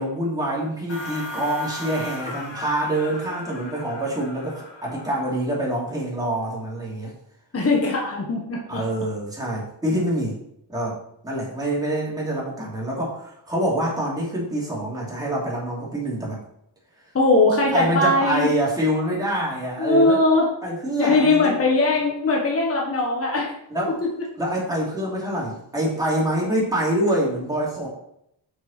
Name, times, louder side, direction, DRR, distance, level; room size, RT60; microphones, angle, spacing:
voice 1, 0.0-7.1 8.7-10.4 10.7-11.0 11.2-16.4 17.7-20.2 20.6-21.5 23.7-24.0 24.4-27.9, right 1 dB, 10° right, -5 dB, 2.8 m, -25 dB
sound 1, 0.9-5.4, left 1 dB, 70° left, 2.0 m, -37 dB
voice 2, 7.5-8.8 17.1-18.5 19.8-20.5 21.0-23.5 24.0-24.3, left 2 dB, 30° left, -1 dB, 1.5 m, -20 dB
6.7 x 6.4 x 4.4 m, 0.75 s
wide cardioid pair, 155°, 45 cm